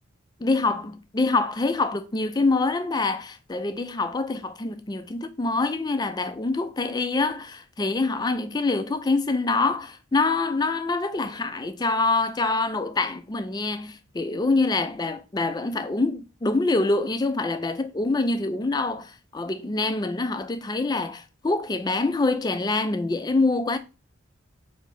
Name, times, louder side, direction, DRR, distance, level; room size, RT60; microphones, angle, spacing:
voice 1, 0.4-23.8, left 3 dB, 20° left, 0.3 m, -25 dB
4.8 x 2.8 x 3.9 m
head